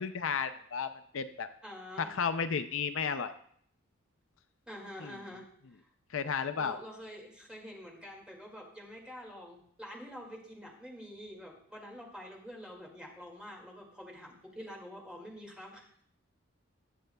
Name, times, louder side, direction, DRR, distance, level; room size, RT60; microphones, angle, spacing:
voice 1, 0.0-1.5 2.0-3.3 5.0-5.1 6.1-6.8, left 6 dB, 70° left, 10 dB, 0.5 m, -33 dB
voice 2, 1.6-2.1 4.7-5.8 6.5-16.0, equal, 5° right, -2 dB, 2.1 m, -47 dB
21.0 x 7.6 x 2.3 m, 0.64 s
head